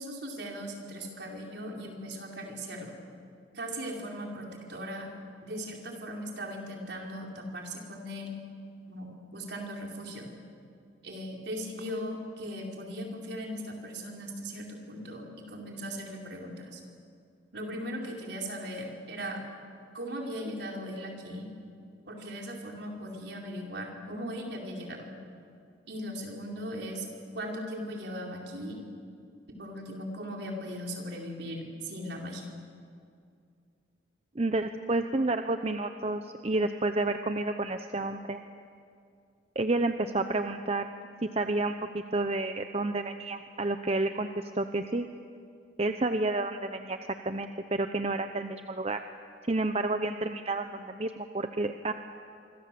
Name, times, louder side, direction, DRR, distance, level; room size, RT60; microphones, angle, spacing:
voice 1, 0.0-2.9 3.5-5.1 5.4-8.4 8.8-10.3 11.0-16.8 17.5-19.4 19.9-21.5 22.1-25.1 25.9-27.1 27.3-28.8 29.5-32.5, equal, 60° right, 0 dB, 4.6 m, -38 dB
voice 2, 34.4-38.4 39.6-40.9 41.4-45.1 45.8-47.0 47.2-49.0 49.5-51.9, right 2 dB, 35° right, 8 dB, 0.7 m, -30 dB
26.0 x 25.5 x 7.7 m, 2.4 s
head